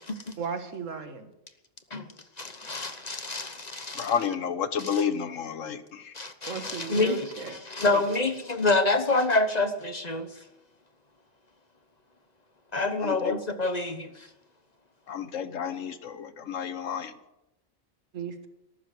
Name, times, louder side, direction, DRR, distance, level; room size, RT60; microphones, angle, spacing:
voice 1, 0.4-1.3 6.5-7.6 7.8-8.0 18.1-18.5, right 5 dB, 70° right, 1.8 m, -36 dB
voice 2, 2.4-4.1 4.8-5.0 6.1-10.3 12.7-14.3, left 2 dB, 35° left, 1.1 m, -27 dB
voice 3, 3.9-6.1 13.0-13.4 15.1-17.1, left 7 dB, 70° left, 1.4 m, -31 dB
14.0 x 12.0 x 8.2 m
omnidirectional pair, 1.4 m